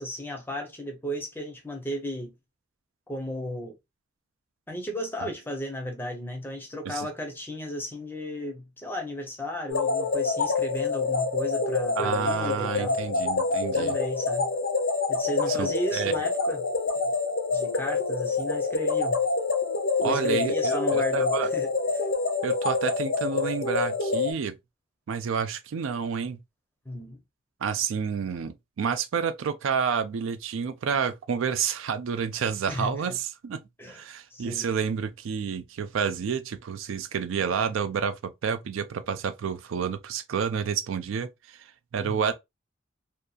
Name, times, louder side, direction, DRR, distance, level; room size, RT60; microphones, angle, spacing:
voice 1, 0.0-2.3 3.1-3.7 4.7-13.0 13.7-14.5 15.1-16.7 17.5-19.2 20.0-21.7 21.9-22.0 26.9-27.2 32.7-33.0 33.8-34.0 34.3-34.7 42.0-42.3, equal, 10° left, 0.5 m, -34 dB
sound 1, 9.7-24.3, left 4 dB, 65° left, 0.6 m, -27 dB
voice 2, 12.0-14.0 15.5-16.1 20.0-21.5 22.4-24.5 25.1-26.4 27.6-33.6 33.9-38.2 38.4-41.6 41.9-42.3, right 6 dB, 75° right, 0.4 m, -29 dB
2.7 x 2.3 x 2.3 m
head